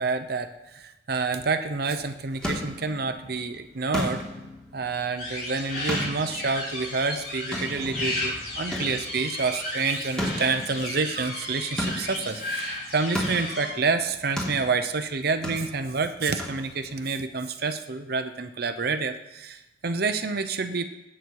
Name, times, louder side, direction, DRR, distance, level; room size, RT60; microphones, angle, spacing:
voice 1, 0.0-4.2 4.7-20.8, right 4 dB, 60° right, 8 dB, 0.8 m, -28 dB
sound 1, 2.0-17.1, equal, 5° left, 3.1 m, -36 dB
sound 2, 5.2-13.7, left 1 dB, 60° left, 6.0 m, -34 dB
19.5 x 8.9 x 4.7 m, 0.97 s
head